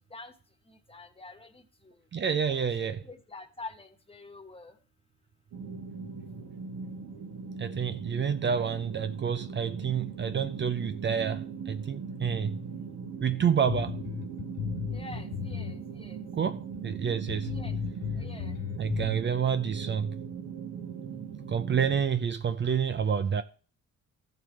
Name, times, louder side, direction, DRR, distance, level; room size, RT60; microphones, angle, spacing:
voice 1, 0.7-1.6 2.5-2.6 3.0-4.7 14.9-16.2 17.5-17.8 18.2-18.5, left 3 dB, 20° left, 1.5 m, -46 dB
voice 2, 2.1-3.0 7.6-12.6 13.2-14.0 16.3-17.5 18.8-20.2 21.5-23.4, right 7 dB, 40° right, 0.6 m, -28 dB
sound 1, 5.5-22.0, right 6 dB, 70° right, 2.3 m, -40 dB
sound 2, 13.7-15.8 16.0-16.1 16.7-16.8 17.3-19.2, left 9 dB, 75° left, 2.0 m, -35 dB
14.5 x 6.7 x 3.3 m
cardioid pair, 90°, 30 cm